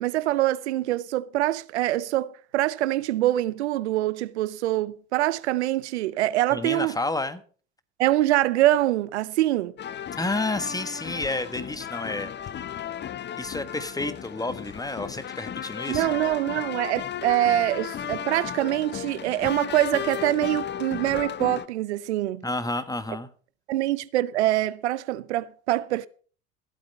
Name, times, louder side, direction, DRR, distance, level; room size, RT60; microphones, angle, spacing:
voice 1, 0.0-7.0 8.0-9.7 15.9-22.4 23.7-26.1, right 15 dB, 85° right, 0.6 m, -24 dB
voice 2, 6.5-7.4 10.2-12.3 12.8-12.9 13.4-16.0 22.4-23.3, left 2 dB, 10° left, 1.5 m, -30 dB
sound 1, 9.8-21.7, left 9 dB, 35° left, 0.7 m, -35 dB
15.0 x 8.7 x 5.4 m
hypercardioid pair, 70°, 33 cm